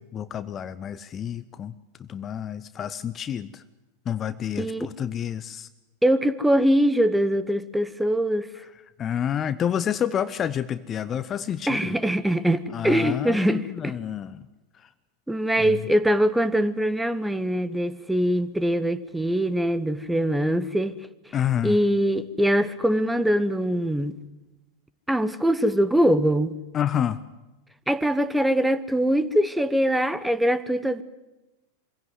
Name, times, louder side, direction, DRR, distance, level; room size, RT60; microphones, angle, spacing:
voice 1, 0.1-1.7 2.0-3.6 4.1-5.7 9.0-11.9 12.7-14.4 14.8-14.9 15.6-15.8 21.3-21.8 26.7-27.2, left 9 dB, 25° left, 0.8 m, -29 dB
voice 2, 4.6-4.9 6.0-8.5 11.7-13.9 15.3-21.0 21.6-24.1 25.1-26.6 27.9-31.0, equal, 5° right, 1.1 m, -23 dB
24.5 x 16.5 x 9.6 m
figure-of-eight pair, 90°, 0 cm